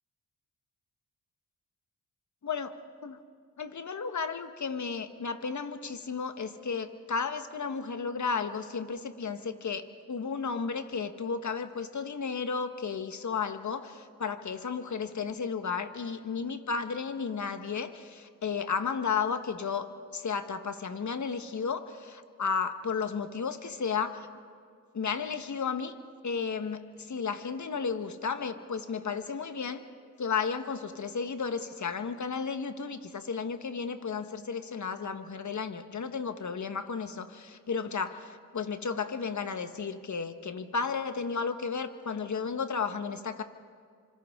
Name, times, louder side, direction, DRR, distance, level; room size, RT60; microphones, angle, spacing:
voice 1, 2.4-3.2 3.6-24.3 24.9-26.0 26.2-29.8 30.2-43.4, left 5 dB, 50° left, 9 dB, 1.4 m, -33 dB
27.5 x 26.0 x 3.8 m, 2.2 s
cardioid pair, 55°, 37 cm